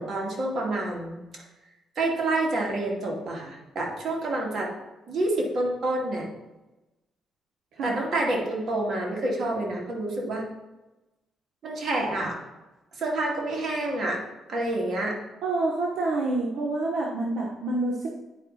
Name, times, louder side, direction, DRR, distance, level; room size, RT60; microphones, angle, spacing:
voice 1, 0.0-1.4 2.0-4.7 5.1-6.3 7.8-10.5 11.6-12.4 12.9-14.2 14.5-15.2, right 2 dB, 50° right, -1 dB, 2.3 m, -28 dB
voice 2, 15.4-18.1, right 2 dB, 80° right, -1 dB, 1.0 m, -27 dB
9.7 x 4.7 x 4.1 m, 1.0 s
cardioid pair, 90°, 0 cm